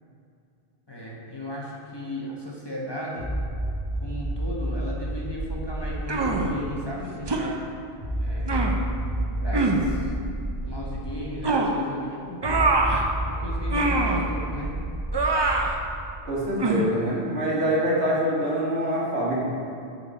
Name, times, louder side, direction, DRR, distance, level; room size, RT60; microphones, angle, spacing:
voice 1, 0.9-3.3 4.0-7.7 8.2-8.6 9.3-10.1 10.6-12.7 13.3-14.8, left 1 dB, 25° left, -5 dB, 1.0 m, -36 dB
sound 1, 3.2-6.9 8.0-11.3 12.4-16.1, right 1 dB, 5° left, 1.9 m, -30 dB
sound 2, 6.1-6.5 7.3-7.5 8.5-8.8 9.5-9.8 11.4-11.7 12.4-13.0 13.7-14.2 15.1-15.7 16.6-16.9, right 3 dB, 35° right, 0.5 m, -23 dB
voice 2, 16.2-19.4, equal, 70° right, -6 dB, 1.9 m, -25 dB
11.5 x 4.2 x 4.1 m, 2.5 s
omnidirectional pair, 1.1 m